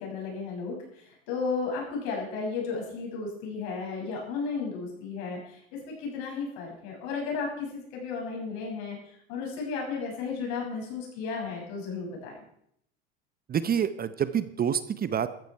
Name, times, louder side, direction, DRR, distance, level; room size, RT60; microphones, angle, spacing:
voice 1, 0.0-5.6 5.9-9.0 9.3-12.4, left 4 dB, 65° left, 0 dB, 6.9 m, -34 dB
voice 2, 13.5-15.3, right 8 dB, 30° right, 14 dB, 0.8 m, -27 dB
14.0 x 13.5 x 4.6 m, 0.72 s
hypercardioid pair, 90°, 31 cm